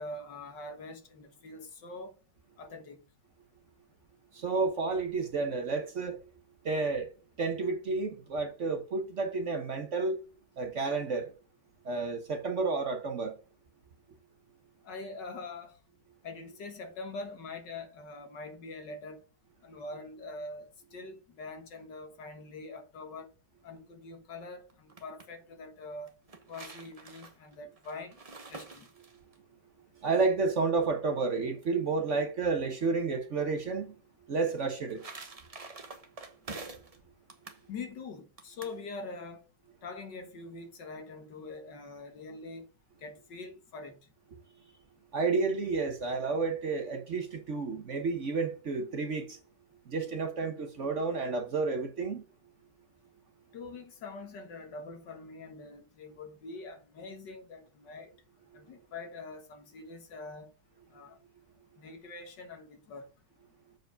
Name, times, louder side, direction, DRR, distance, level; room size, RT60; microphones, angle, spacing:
voice 1, 0.0-2.1 2.6-3.0 14.8-15.7 16.2-19.2 19.6-23.3 23.6-26.1 26.5-28.2 28.5-28.9 37.7-39.4 39.8-42.7 43.0-44.0 53.5-58.1 58.5-60.5 60.9-61.2 61.8-63.1, left 3 dB, 75° left, 2.1 m, -44 dB
voice 2, 4.3-6.2 6.6-7.1 7.4-10.2 10.6-11.3 11.8-13.4 30.0-33.9 34.3-35.0 45.1-49.4 49.9-52.2, right 4 dB, 50° right, 1.1 m, -31 dB
sound 1, 24.7-25.3 26.1-29.4 34.5-37.0 37.3-37.6 38.4-38.8, right 3 dB, 25° right, 0.9 m, -47 dB
7.8 x 4.8 x 5.0 m
omnidirectional pair, 1.9 m